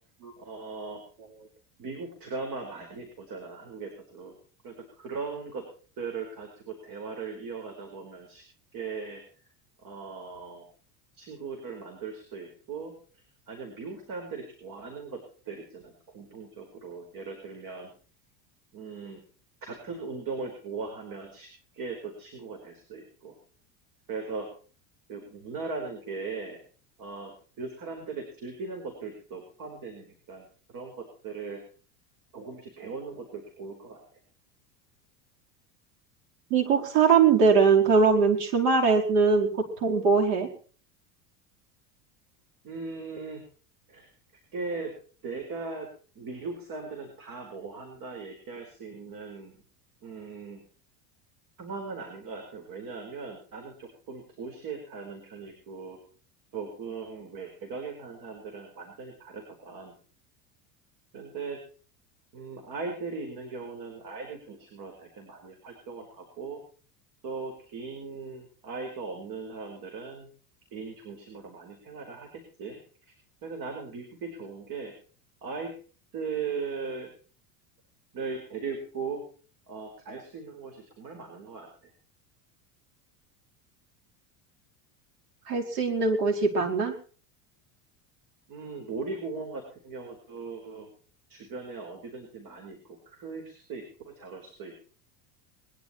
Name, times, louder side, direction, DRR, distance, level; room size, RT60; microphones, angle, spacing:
voice 1, 0.4-1.0 1.8-4.4 4.6-5.6 6.0-8.4 8.7-9.2 9.8-10.6 11.1-12.9 13.5-17.9 18.7-19.2 19.6-23.3 24.1-24.5 25.1-26.6 27.0-30.5 30.7-31.6 32.3-34.0 42.6-43.4 43.9-44.1 44.5-44.9 45.2-45.9 46.1-49.6 50.0-50.6 51.6-56.0 56.5-59.9 61.1-61.6 62.3-66.6 67.2-70.3 70.7-73.1 73.4-74.9 75.4-75.7 76.1-77.1 78.1-79.2 79.7-81.9 88.5-90.9 91.3-93.8 94.2-94.9, right 4 dB, 50° right, 3 dB, 4.9 m, -39 dB
voice 2, 36.5-39.5 39.8-40.5 85.5-86.9, right 5 dB, 85° right, 2 dB, 4.7 m, -21 dB
21.5 x 12.0 x 4.5 m, 0.41 s
supercardioid pair, 115°, 45 cm